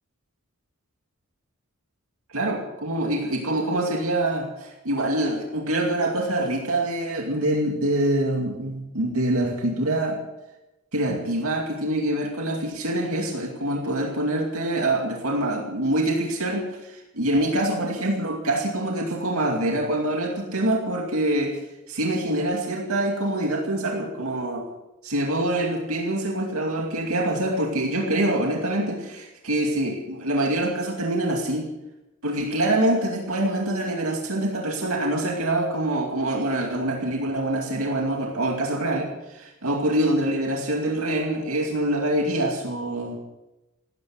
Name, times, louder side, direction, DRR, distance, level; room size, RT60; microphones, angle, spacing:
voice 1, 2.3-10.2 10.9-21.6 21.9-24.7 25.0-31.7 32.2-43.2, right 1 dB, 80° right, 0 dB, 2.4 m, -25 dB
16.5 x 13.5 x 6.5 m, 0.96 s
head